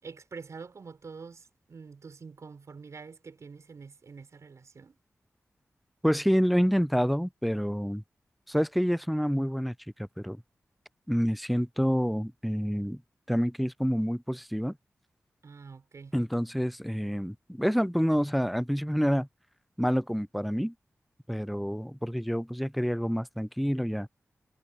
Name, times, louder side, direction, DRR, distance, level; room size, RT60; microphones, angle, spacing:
voice 1, 0.0-5.0 15.4-16.1, right 5 dB, 75° right, 5.9 m, -46 dB
voice 2, 6.0-8.0 8.5-10.4 11.1-13.0 13.3-14.7 16.1-19.3 19.8-20.7 21.3-24.1, equal, ahead, 0.5 m, -28 dB
cardioid pair, 50°, 5 cm